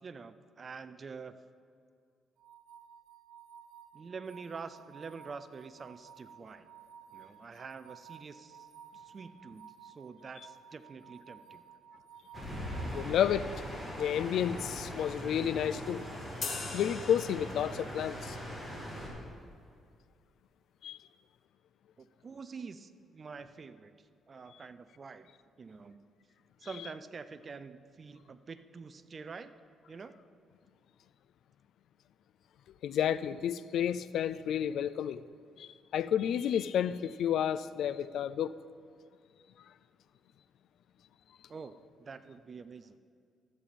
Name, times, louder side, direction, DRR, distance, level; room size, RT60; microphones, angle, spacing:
voice 1, 0.0-1.3 3.9-6.7 7.1-8.7 8.9-11.6 22.0-25.3 25.6-26.0 26.6-29.5 29.9-30.1 41.5-43.0, right 5 dB, 40° right, 0.4 m, -46 dB
sound 1, 2.4-13.2, right 8 dB, 75° right, 1.3 m, -54 dB
sound 2, 12.3-19.1, equal, 15° left, 2.5 m, -41 dB
voice 2, 12.9-13.5 14.0-16.0 16.7-18.4 20.8-21.0 32.8-35.2 35.6-38.5, left 9 dB, 75° left, 0.3 m, -31 dB
sound 3, 16.4-18.0, left 4 dB, 50° left, 1.3 m, -41 dB
13.5 x 7.6 x 4.2 m
cardioid pair, 90°, 0 cm